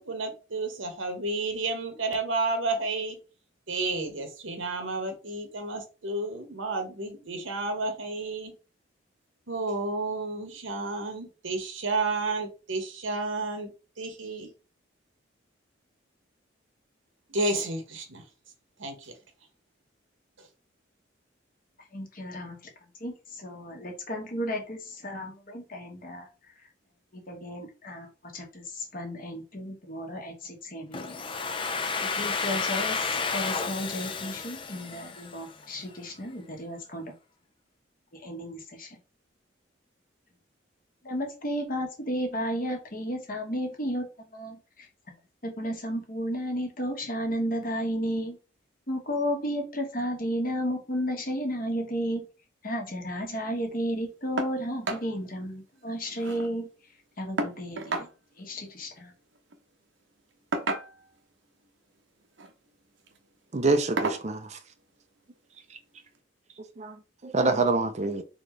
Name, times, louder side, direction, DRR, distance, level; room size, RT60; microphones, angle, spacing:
voice 1, 0.0-3.2 3.7-8.5 9.5-13.7 14.0-14.5 17.3-18.2 18.8-19.1 20.4-20.5, right 3 dB, 90° right, 1.4 m, -31 dB
voice 2, 21.9-22.6 23.0-26.3 27.1-31.1 32.0-37.1 38.2-39.0 41.0-44.1 44.3-44.9 45.4-48.4 48.9-52.3 52.6-56.7 57.2-58.1 58.4-59.1, equal, 45° left, 1.3 m, -33 dB
Domestic sounds home sounds, 30.9-35.7, left 5 dB, 25° left, 0.4 m, -31 dB
sound 1, 54.4-54.6 54.8-55.1 55.4-55.5 55.8-56.5 57.4-58.1 59.4-59.6 60.5-61.2 62.2-62.5 63.0-63.2 64.0-64.3 65.5-65.6 66.1-66.2, right 2 dB, 70° right, 0.9 m, -32 dB
voice 3, 63.5-64.5 66.8-66.9 67.2-68.2, right 3 dB, 35° right, 0.5 m, -25 dB
4.2 x 3.8 x 3.2 m
head